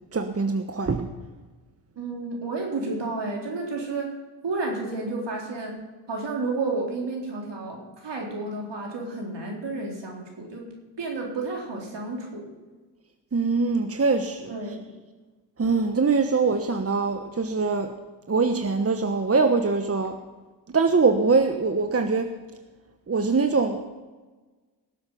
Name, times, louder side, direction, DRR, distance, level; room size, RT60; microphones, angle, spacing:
voice 1, 0.1-1.1 13.3-14.6 15.6-17.9 18.3-20.2 20.7-22.3 23.1-23.9, right 4 dB, 30° right, 7 dB, 1.2 m, -23 dB
voice 2, 2.0-4.1 4.4-5.8 6.1-10.7 11.0-12.5 14.5-14.8, right 3 dB, 65° right, -1 dB, 4.0 m, -31 dB
18.0 x 8.0 x 5.8 m, 1.3 s
supercardioid pair, 45°, 46 cm